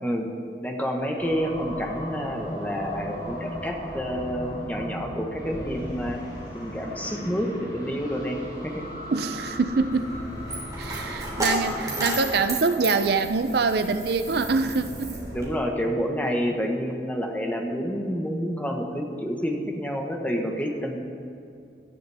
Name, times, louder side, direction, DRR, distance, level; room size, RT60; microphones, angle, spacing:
voice 1, 0.6-6.2 6.5-8.4 8.6-8.8 15.3-21.0, equal, 10° left, 1 dB, 1.3 m, -29 dB
sound 1, 1.2-13.2, equal, 25° left, 3.8 m, -37 dB
voice 2, 9.1-10.1 10.8-15.1, right 4 dB, 65° right, 10 dB, 0.5 m, -24 dB
Coin (dropping), 9.4-15.5, right 2 dB, 20° right, 3.3 m, -33 dB
17.5 x 12.0 x 3.5 m, 2.6 s
head